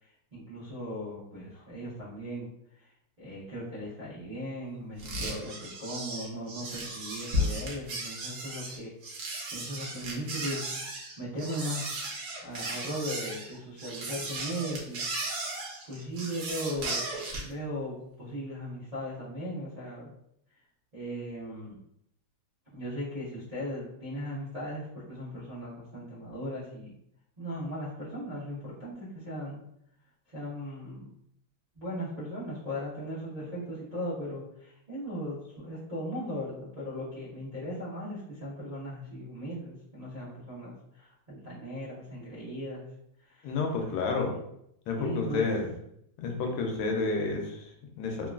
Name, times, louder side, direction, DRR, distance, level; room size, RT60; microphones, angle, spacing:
voice 1, 0.0-9.2 9.5-10.8 11.2-12.1 12.4-15.0 15.5-15.6 15.9-17.1 17.4-20.1 20.9-21.8 22.7-26.9 27.4-29.6 30.3-31.1 31.8-42.8 43.2-43.5 44.3-44.4 45.0-45.4, equal, 80° right, -10 dB, 0.3 m, -38 dB
sound 1, 5.0-17.5, right 1 dB, 65° right, 1.1 m, -35 dB
voice 2, 43.4-44.3 44.9-45.7 46.2-48.3, left 3 dB, 85° left, 1 dB, 1.4 m, -30 dB
3.6 x 2.3 x 2.2 m, 0.76 s
omnidirectional pair, 2.2 m